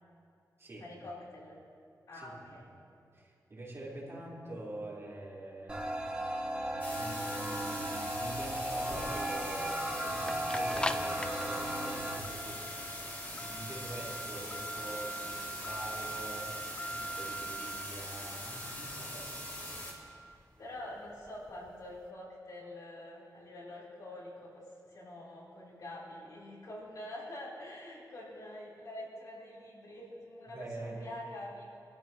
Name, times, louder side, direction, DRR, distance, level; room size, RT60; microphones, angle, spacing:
voice 1, 0.8-1.6 2.1-2.7 20.6-31.7, left 1 dB, 65° left, -6 dB, 4.2 m, -46 dB
voice 2, 2.1-2.5 3.1-5.8 7.0-12.6 13.3-16.5 16.9-19.3 30.5-31.0, right 1 dB, 40° right, -7 dB, 4.5 m, -45 dB
sound 1, 5.7-12.2, right 1 dB, 15° right, 1.4 m, -35 dB
sound 2, 6.8-19.9, left 1 dB, 30° left, 2.9 m, -43 dB
sound 3, 8.0-22.0, right 1 dB, 15° left, 0.5 m, -43 dB
24.5 x 13.0 x 3.1 m, 2.4 s
wide cardioid pair, 165°, 7 cm